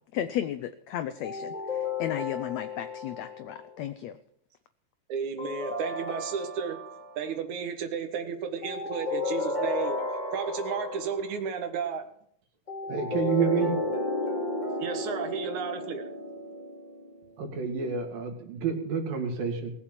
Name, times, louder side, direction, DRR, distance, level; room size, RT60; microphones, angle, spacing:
voice 1, 0.1-4.2, left 11 dB, 90° left, 11 dB, 1.5 m, -34 dB
sound 1, 1.2-3.7 5.4-7.2 8.6-11.3 12.7-17.2, left 2 dB, 15° left, 2.2 m, -33 dB
voice 2, 5.1-6.8 7.2-10.0 10.3-12.0 14.8-16.0, right 6 dB, 65° right, 6 dB, 2.7 m, -33 dB
voice 3, 12.9-13.7 17.4-19.7, right 6 dB, 80° right, 3 dB, 3.9 m, -29 dB
19.0 x 7.2 x 7.4 m, 0.66 s
omnidirectional pair, 3.9 m